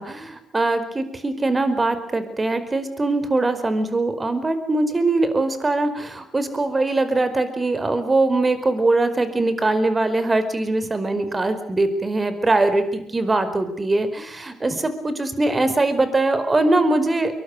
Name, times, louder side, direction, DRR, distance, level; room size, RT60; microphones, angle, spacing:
voice 1, 0.0-17.3, right 2 dB, 25° right, 11 dB, 4.8 m, -22 dB
26.0 x 23.0 x 6.5 m, 0.71 s
hypercardioid pair, 50°, 0 cm